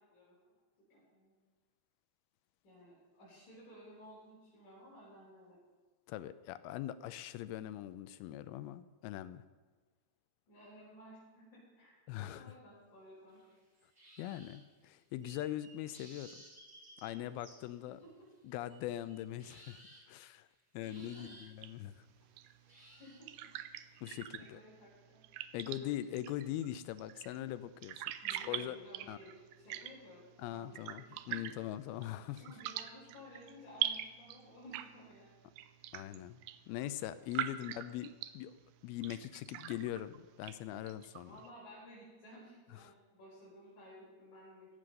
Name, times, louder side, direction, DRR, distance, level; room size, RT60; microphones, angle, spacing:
voice 1, 0.9-1.3 2.6-5.6 10.5-11.9 12.2-13.4 18.0-18.3 20.9-21.3 23.0-23.5 24.1-25.2 25.6-25.9 28.2-30.2 30.5-31.4 32.3-35.6 41.3-44.7, equal, 50° left, -9 dB, 6.2 m, -55 dB
voice 2, 6.1-9.4 12.1-12.5 14.2-16.4 17.0-18.0 18.4-19.8 20.1-20.5 20.7-22.1 24.0-24.6 25.5-28.0 28.5-28.8 29.1-29.2 30.4-32.4 35.9-36.4 36.7-38.5 38.8-41.4 42.8-42.9, left 13 dB, 80° left, 13 dB, 2.3 m, -41 dB
sound 1, 13.3-14.7 15.2-18.0 18.3-20.5 20.8-21.6 22.7-24.3, right 1 dB, 15° right, 1.4 m, -58 dB
sound 2, 21.6-41.5, right 13 dB, 80° right, 2.5 m, -45 dB
16.0 x 7.6 x 6.6 m, 1.4 s
omnidirectional pair, 4.6 m